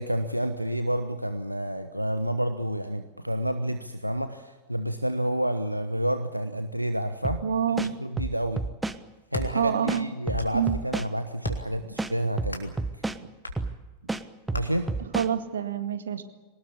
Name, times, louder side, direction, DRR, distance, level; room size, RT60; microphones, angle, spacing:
voice 1, 0.0-7.4 7.8-8.6 9.3-12.8 14.5-14.9, right 1 dB, 90° right, 9 dB, 1.1 m, -29 dB
sound 1, 7.2-7.4 7.8-9.0 9.3-9.5 9.9-11.1 11.5-11.6 12.0-13.2 13.6-13.7 14.1-15.3, right 2 dB, 10° right, 1.1 m, -30 dB
voice 2, 7.4-7.9 9.5-10.1 10.5-10.8 15.1-16.2, right 8 dB, 65° right, 9 dB, 2.0 m, -27 dB
sound 2, 9.1-9.5 10.1-10.7 11.4-11.8 12.5-12.8 13.4-13.6 14.5-14.6, left 2 dB, 80° left, 3.3 m, -38 dB
23.5 x 19.5 x 8.5 m, 1.2 s
figure-of-eight pair, 90°, 0 cm